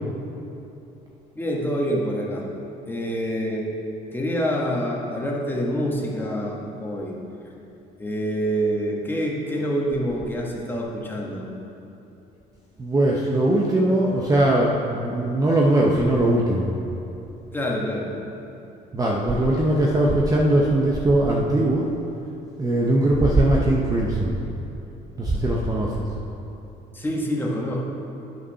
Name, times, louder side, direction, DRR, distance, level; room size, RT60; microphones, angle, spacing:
voice 1, 1.3-2.5 2.9-3.7 4.1-7.1 8.0-11.5 17.5-18.1 26.9-27.8, equal, 10° left, -3 dB, 1.5 m, -26 dB
voice 2, 12.8-16.7 18.9-21.9 22.6-24.4 25.2-26.0, right 1 dB, 20° right, -3 dB, 0.9 m, -20 dB
9.6 x 5.9 x 5.7 m, 2.9 s
cardioid pair, 110°, 17 cm